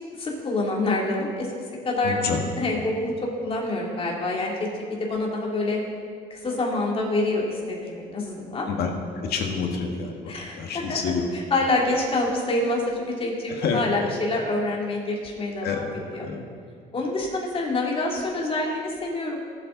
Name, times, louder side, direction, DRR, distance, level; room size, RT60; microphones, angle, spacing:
voice 1, 0.2-1.5 1.8-2.2 2.5-4.7 5.0-5.8 6.3-8.7 10.3-11.0 11.3-16.3 16.9-19.4, left 2 dB, 35° left, -2 dB, 3.0 m, -26 dB
voice 2, 2.0-2.4 8.7-8.9 9.2-11.3 13.6-13.8 15.6-15.9 16.2-16.4, left 6 dB, 70° left, 2 dB, 1.9 m, -28 dB
18.5 x 7.9 x 4.0 m, 2.2 s
cardioid pair, 110°, 17 cm